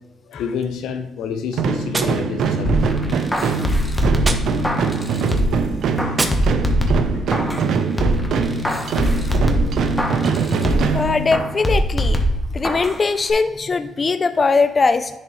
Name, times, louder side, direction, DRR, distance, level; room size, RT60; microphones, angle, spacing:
voice 1, 0.3-2.9 6.0-6.2 7.1-7.2, left 6 dB, 85° left, 0.6 m, -28 dB
sound 1, 1.5-11.7, right 5 dB, 70° right, 0.6 m, -23 dB
Gunshot gunfire, 1.9-3.0 4.2-5.0 6.1-7.0, right 3 dB, 30° right, 0.7 m, -28 dB
sound 2, 2.6-5.6 6.0-7.7 8.0-11.0 11.3-13.0 13.3-13.4, equal, 15° left, 1.1 m, -22 dB
voice 2, 10.9-12.2 12.5-15.2, left 4 dB, 35° left, 0.3 m, -20 dB
10.5 x 4.0 x 3.1 m
cardioid pair, 90°, 0 cm